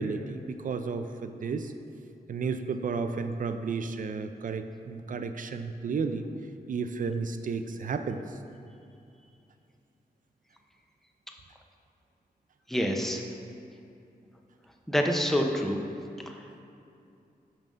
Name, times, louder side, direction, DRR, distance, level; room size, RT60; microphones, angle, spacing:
voice 1, 0.0-1.7 2.3-6.3 6.7-8.2, right 5 dB, 55° right, 8 dB, 0.4 m, -32 dB
voice 2, 12.7-13.2 14.9-15.8, equal, ahead, 2 dB, 0.6 m, -26 dB
5.6 x 5.2 x 6.2 m, 2.6 s
wide cardioid pair, 130°, 16 cm